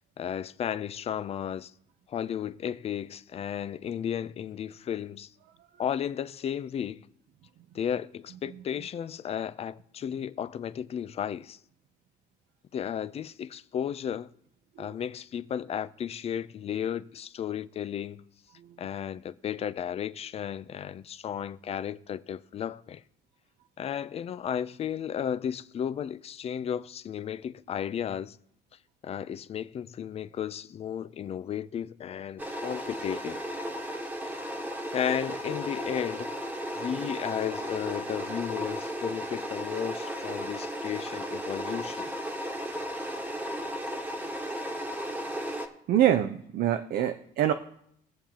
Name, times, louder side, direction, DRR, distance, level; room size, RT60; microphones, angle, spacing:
voice 1, 0.2-1.7 2.1-5.3 5.8-7.1 7.7-11.6 12.7-14.3 14.8-18.2 18.8-23.0 23.8-28.4 29.0-33.4 34.9-36.3 36.7-42.1, left 9 dB, 35° left, 0.4 m, -34 dB
sound 1, 32.4-45.7, equal, 10° right, 1.3 m, -35 dB
voice 2, 45.9-47.5, right 11 dB, 65° right, 0.6 m, -25 dB
20.0 x 7.3 x 2.9 m
cardioid pair, 110°, 17 cm